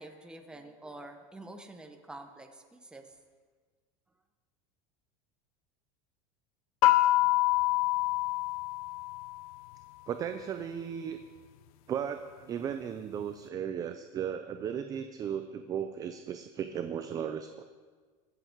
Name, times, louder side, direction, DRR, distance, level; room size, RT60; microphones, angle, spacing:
voice 1, 0.0-3.1, right 2 dB, 5° right, 5 dB, 0.8 m, -47 dB
sound 1, 6.8-9.5, left 17 dB, 80° left, 0.6 m, -26 dB
voice 2, 10.1-11.2 11.9-17.6, right 8 dB, 20° right, 8 dB, 0.4 m, -36 dB
23.0 x 7.8 x 4.6 m, 1.5 s
supercardioid pair, 170°, 18 cm